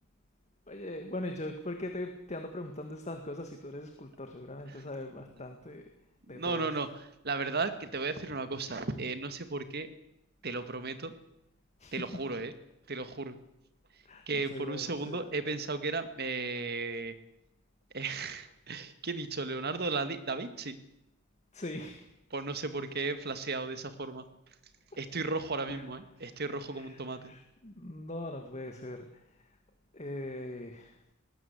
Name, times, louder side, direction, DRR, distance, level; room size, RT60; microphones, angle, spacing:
voice 1, 0.7-5.9 6.3-6.7 11.8-12.2 14.1-15.3 21.5-22.0 25.7-25.9 26.7-29.2 29.9-31.0, left 1 dB, 30° left, 5 dB, 1.9 m, -41 dB
voice 2, 6.3-6.9 7.2-9.9 10.4-11.1 11.9-12.5 12.9-13.4 14.3-17.2 17.9-20.8 22.3-24.2 25.0-27.3, right 3 dB, 50° right, 10 dB, 1.9 m, -35 dB
20.5 x 19.0 x 8.3 m, 0.84 s
head